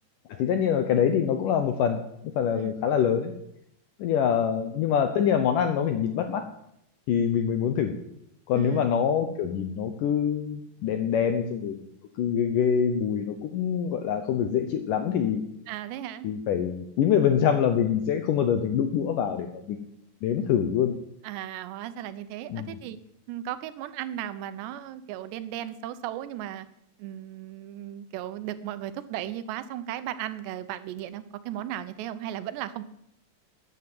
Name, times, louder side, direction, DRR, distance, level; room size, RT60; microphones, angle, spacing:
voice 1, 0.3-3.3 4.0-6.4 7.1-8.0 8.5-11.8 12.2-15.4 16.2-19.8 20.2-20.9 22.5-22.8, left 8 dB, 75° left, 7 dB, 2.0 m, -25 dB
voice 2, 8.5-8.9 15.7-16.3 21.2-23.0 23.3-26.7 27.0-32.8, right 12 dB, 85° right, 13 dB, 3.0 m, -36 dB
13.5 x 9.7 x 7.8 m, 0.77 s
omnidirectional pair, 4.9 m